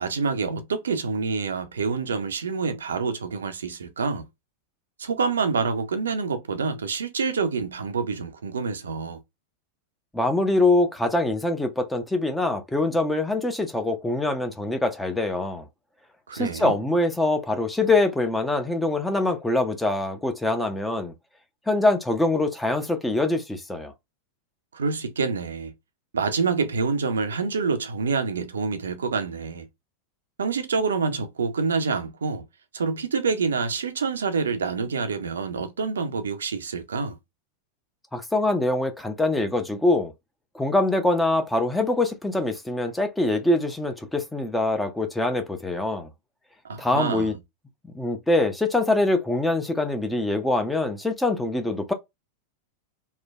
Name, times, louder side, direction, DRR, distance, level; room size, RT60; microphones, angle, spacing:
voice 1, 0.0-4.2 5.0-9.2 16.3-16.8 24.7-25.7 26.1-29.7 30.4-32.4 32.7-37.2 46.6-47.4, right 5 dB, 70° right, 0.5 m, -27 dB
voice 2, 10.1-15.6 16.3-21.1 21.7-23.9 38.1-40.1 40.5-46.1 46.8-47.4 47.9-51.9, left 2 dB, 5° left, 0.5 m, -24 dB
3.1 x 2.1 x 2.2 m
figure-of-eight pair, 90°, 0 cm